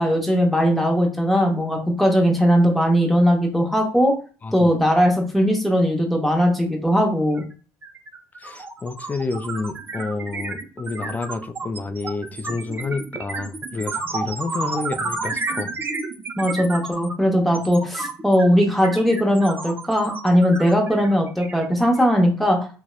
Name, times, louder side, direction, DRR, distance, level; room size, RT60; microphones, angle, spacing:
voice 1, 0.0-4.1 4.5-7.4 16.4-22.7, equal, ahead, 0.8 m, -19 dB
sound 1, 7.4-7.5 7.8-22.2, right 3 dB, 30° right, 0.5 m, -31 dB
voice 2, 8.4-15.7, left 3 dB, 25° left, 0.3 m, -29 dB
2.7 x 2.0 x 2.2 m
supercardioid pair, 70°, 7 cm